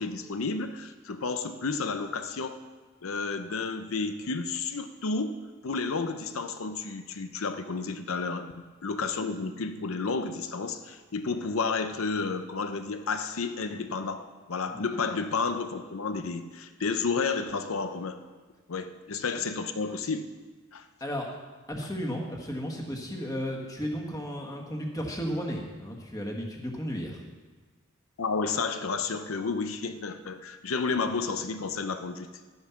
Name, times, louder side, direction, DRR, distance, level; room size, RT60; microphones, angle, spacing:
voice 1, 0.0-2.6 3.0-5.4 5.6-8.5 8.8-18.2 18.7-20.3 20.7-20.8 28.2-32.3, left 4 dB, 80° left, 8 dB, 0.7 m, -31 dB
voice 2, 21.7-27.2, equal, 15° left, 0 dB, 1.6 m, -34 dB
12.0 x 9.7 x 5.8 m, 1.4 s
head